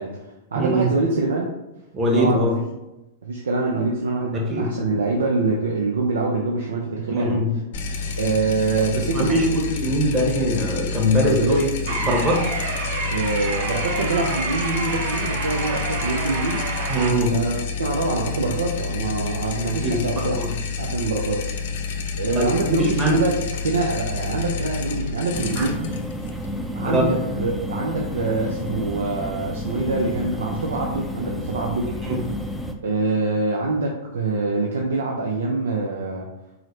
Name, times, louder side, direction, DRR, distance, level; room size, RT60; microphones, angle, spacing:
voice 1, 0.0-1.5 2.1-2.5 3.2-7.4 8.2-9.6 11.2-11.6 13.1-16.7 17.3-20.4 20.8-21.6 22.2-25.8 26.8-31.9 32.8-36.3, right 3 dB, 85° right, 0 dB, 0.5 m, -25 dB
voice 2, 0.6-0.9 1.9-2.5 4.3-4.7 7.1-7.5 9.1-11.7 12.0-12.4 16.9-17.4 19.5-20.5 22.3-23.2 25.6-25.7 26.9-27.1 32.0-32.2, equal, 25° right, -1 dB, 1.1 m, -22 dB
sound 1, 7.7-27.0, left 5 dB, 70° left, 0.5 m, -29 dB
sound 2, 11.9-17.1, right 3 dB, 60° right, 0.8 m, -29 dB
sound 3, 25.3-32.7, left 1 dB, 5° right, 0.4 m, -30 dB
4.6 x 2.1 x 3.1 m, 0.98 s
hypercardioid pair, 115°, 0 cm